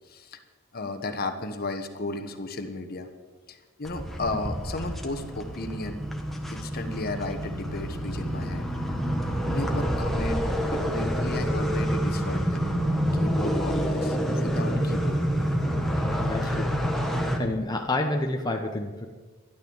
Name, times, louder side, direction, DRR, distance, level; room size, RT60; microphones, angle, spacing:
voice 1, 0.1-0.4 0.7-3.1 3.5-6.0 6.5-8.7 9.5-10.5 10.7-12.7 13.1-15.2, left 2 dB, 45° left, 7 dB, 1.3 m, -34 dB
sound 1, 3.8-17.4, equal, ahead, 1.4 m, -27 dB
voice 2, 15.6-16.8 17.1-19.1, left 2 dB, 20° left, 2 dB, 1.0 m, -30 dB
12.5 x 11.5 x 7.3 m, 1.4 s
head